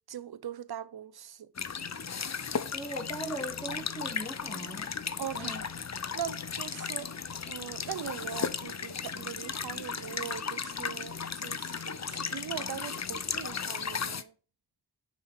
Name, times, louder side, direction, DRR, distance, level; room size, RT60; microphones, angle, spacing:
voice 1, 0.1-1.5 5.2-5.5 6.1-7.1 7.5-14.3, right 9 dB, 70° right, 0.6 m, -41 dB
sound 1, 1.6-14.2, left 6 dB, 40° left, 0.7 m, -36 dB
voice 2, 2.7-4.9 5.3-5.6, right 1 dB, 10° left, 1.6 m, -39 dB
6.5 x 5.2 x 4.7 m
cardioid pair, 45°, 40 cm